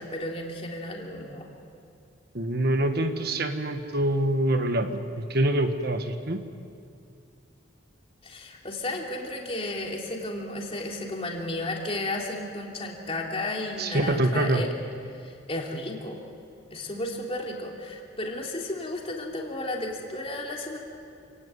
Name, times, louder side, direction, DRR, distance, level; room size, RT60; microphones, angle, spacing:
voice 1, 0.0-1.5 8.2-14.7 15.1-16.2 16.7-20.8, left 1 dB, 30° left, 0 dB, 3.3 m, -33 dB
voice 2, 2.3-6.4 13.8-14.6, right 1 dB, 50° right, 7 dB, 1.4 m, -25 dB
28.5 x 17.0 x 9.6 m, 2.5 s
head